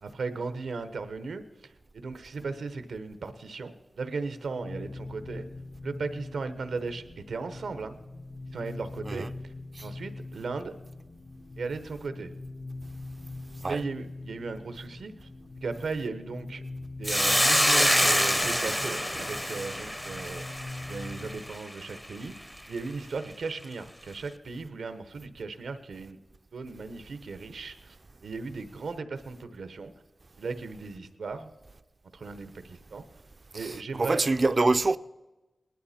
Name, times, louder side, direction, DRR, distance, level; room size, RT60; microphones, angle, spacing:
voice 1, 0.0-5.5 5.8-8.0 8.5-9.5 9.8-10.7 11.6-12.3 13.6-15.3 15.6-16.6 17.0-20.4 20.9-26.2 26.5-28.0 28.2-29.9 30.4-31.5 32.1-33.1 33.5-34.2, right 4 dB, 90° right, 0.9 m, -37 dB
sound 1, 4.5-21.5, left 2 dB, 55° left, 0.8 m, -43 dB
Hiss, 17.0-21.6, equal, 10° left, 0.7 m, -26 dB
voice 2, 34.0-35.0, right 3 dB, 50° right, 0.5 m, -24 dB
19.0 x 12.0 x 4.3 m
cardioid pair, 50°, 0 cm